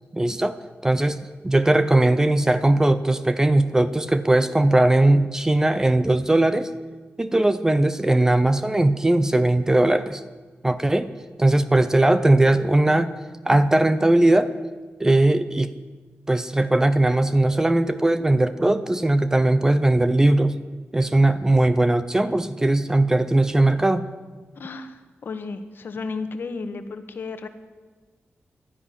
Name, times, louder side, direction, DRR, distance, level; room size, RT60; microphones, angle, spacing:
voice 1, 0.1-0.6 0.8-1.2 1.4-6.7 7.2-10.2 10.6-11.1 11.4-13.1 13.4-14.5 15.0-15.7 16.3-20.5 20.9-24.1, right 1 dB, 15° right, 12 dB, 0.5 m, -19 dB
voice 2, 24.6-27.5, left 4 dB, 60° left, 9 dB, 1.2 m, -33 dB
12.5 x 10.5 x 9.9 m, 1.3 s
wide cardioid pair, 170°, 4 cm